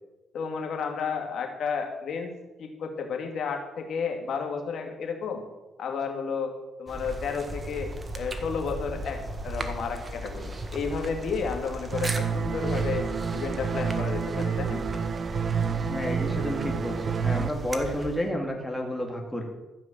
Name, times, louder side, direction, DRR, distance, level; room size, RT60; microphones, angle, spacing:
voice 1, 0.3-2.3 2.6-5.4 5.8-6.5 6.8-13.0 13.3-14.8, left 5 dB, 65° left, 4 dB, 2.4 m, -32 dB
sound 1, 6.9-18.3, right 1 dB, 25° right, 1.5 m, -37 dB
sound 2, 11.9-17.5, right 6 dB, 45° right, 0.6 m, -29 dB
voice 2, 15.8-19.4, equal, 10° left, 0 dB, 2.3 m, -31 dB
14.0 x 6.0 x 7.5 m, 1.1 s
cardioid pair, 90°, 0 cm